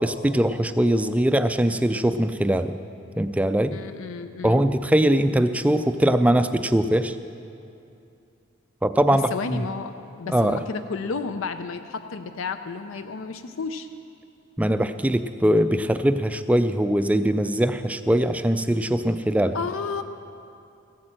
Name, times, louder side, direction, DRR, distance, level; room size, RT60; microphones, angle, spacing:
voice 1, 0.0-2.8 3.2-3.8 4.4-7.2 8.8-9.6 10.3-10.6 14.6-19.6, right 1 dB, 5° right, 10 dB, 0.3 m, -21 dB
voice 2, 3.7-4.6 9.1-9.9 10.2-13.9 19.5-20.0, left 4 dB, 75° left, 8 dB, 0.5 m, -32 dB
15.0 x 8.5 x 7.6 m, 2.6 s
head